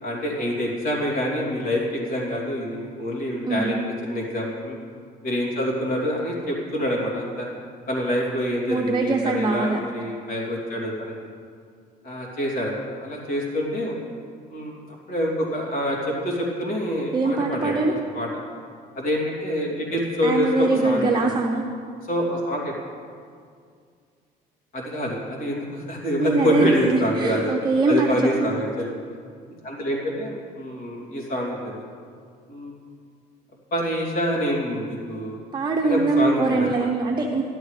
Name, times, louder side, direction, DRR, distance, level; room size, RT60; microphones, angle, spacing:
voice 1, 0.0-4.8 5.2-7.5 7.9-11.1 12.0-14.0 14.5-18.3 18.9-21.3 22.1-22.7 24.7-27.5 27.9-28.9 29.6-31.8 32.5-32.7 33.7-35.4 35.8-36.9, equal, 60° left, -3 dB, 2.8 m, -26 dB
voice 2, 8.7-9.8 17.1-18.0 20.2-21.6 26.2-28.2 35.5-37.4, right 3 dB, 25° right, 1 dB, 0.7 m, -22 dB
13.5 x 11.0 x 3.2 m, 2.2 s
cardioid pair, 110°, 17 cm